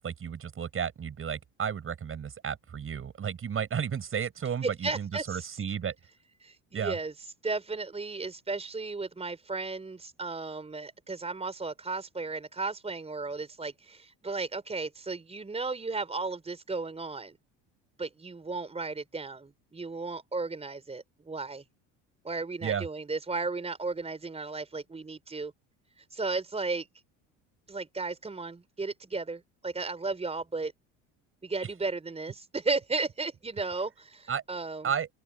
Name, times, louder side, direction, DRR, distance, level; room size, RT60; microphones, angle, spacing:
voice 1, 0.0-5.9 6.7-7.0 22.6-22.8 34.3-34.4 34.8-35.1, right 7 dB, 40° right, 7.1 m, -33 dB
voice 2, 4.6-5.5 6.4-7.1 7.4-17.4 18.0-21.6 22.2-25.5 26.0-26.9 27.7-30.7 31.4-34.9, right 3 dB, 20° right, 4.6 m, -34 dB
open air
supercardioid pair, 95°, 34 cm